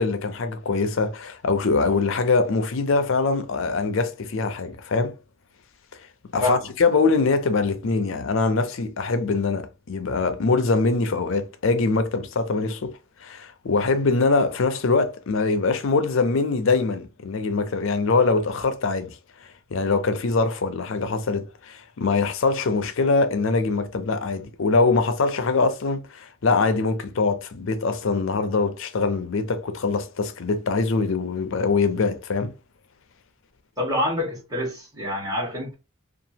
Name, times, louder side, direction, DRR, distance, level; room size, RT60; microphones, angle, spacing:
voice 1, 0.0-5.2 6.3-19.2 19.7-32.5, left 4 dB, 60° left, 0.5 m, -23 dB
voice 2, 33.8-35.7, left 1 dB, 15° right, 1.3 m, -26 dB
2.7 x 2.4 x 2.8 m
head